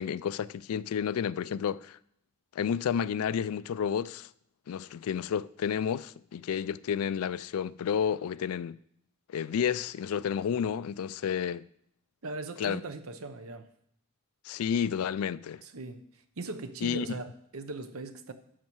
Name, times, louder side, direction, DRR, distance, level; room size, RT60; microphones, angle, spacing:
voice 1, 0.0-2.0 2.5-4.3 4.7-8.8 9.3-11.7 12.6-12.8 14.4-15.6 16.8-17.1, left 8 dB, 80° left, 0.3 m, -31 dB
voice 2, 12.2-13.7 15.6-16.1 16.4-18.3, right 2 dB, 70° right, 0.9 m, -39 dB
12.5 x 6.5 x 4.6 m
head